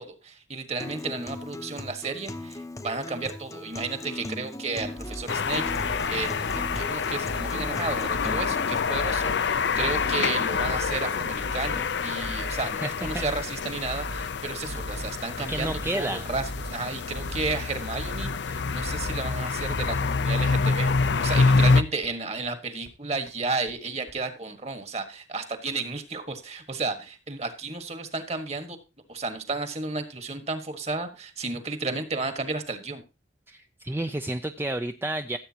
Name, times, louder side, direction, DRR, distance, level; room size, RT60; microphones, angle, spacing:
voice 1, 0.0-20.9 21.2-28.8 29.1-33.0, right 3 dB, 35° right, 9 dB, 1.5 m, -33 dB
Acoustic guitar, 0.8-8.8, left 2 dB, 15° left, 0.7 m, -39 dB
sound 1, 4.8-5.2 5.6-6.1 6.5-6.9 7.3-7.7 8.1-8.5 8.9-9.3 9.7-10.2 10.6-11.0 11.4-11.8 12.2-12.6 13.0-13.5 13.8-14.3 14.7-15.1 15.5-15.9 16.3-16.7 17.1-17.6 17.9-18.4 18.8-19.2 19.6-20.0 20.4-20.5 20.8-20.9 21.2-21.3 21.6-21.7 22.0-22.1 22.4-22.5 22.9-23.0 23.3-23.4 23.7-23.8 24.1-24.2, right 1 dB, 55° right, 2.1 m, -38 dB
sound 2, 5.3-21.8, left 4 dB, 70° left, 0.6 m, -27 dB
voice 2, 12.8-13.2 13.8-14.0 15.5-16.3 33.5-35.4, right 1 dB, 10° right, 7 dB, 0.4 m, -31 dB
15.0 x 8.2 x 2.9 m, 0.29 s
head